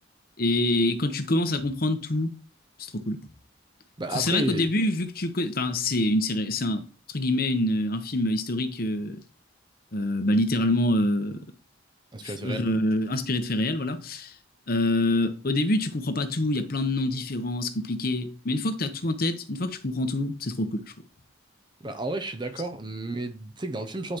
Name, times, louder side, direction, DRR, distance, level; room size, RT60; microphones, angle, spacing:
voice 1, 0.4-2.3 2.9-3.2 4.1-9.2 9.9-11.4 12.2-14.3 14.7-20.8, left 1 dB, 50° left, 0.9 m, -26 dB
voice 2, 4.0-4.7 12.1-12.7 21.8-24.2, right 2 dB, 20° right, 0.6 m, -32 dB
9.8 x 4.9 x 3.0 m
head